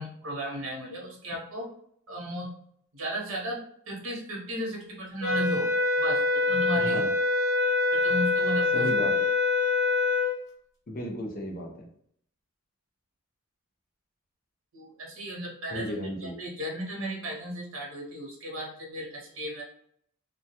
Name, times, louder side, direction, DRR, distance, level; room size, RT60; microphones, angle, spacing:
voice 1, 0.0-1.7 2.1-2.5 2.9-5.7 6.0-7.0 7.9-8.9 14.7-19.6, equal, 75° right, -2 dB, 0.8 m, -35 dB
sound 1, 5.2-10.4, left 3 dB, 65° left, 1.0 m, -25 dB
voice 2, 6.8-7.1 8.7-9.3 10.9-11.9 15.7-16.3, equal, 45° left, 1 dB, 0.5 m, -34 dB
2.2 x 2.1 x 2.7 m, 0.66 s
head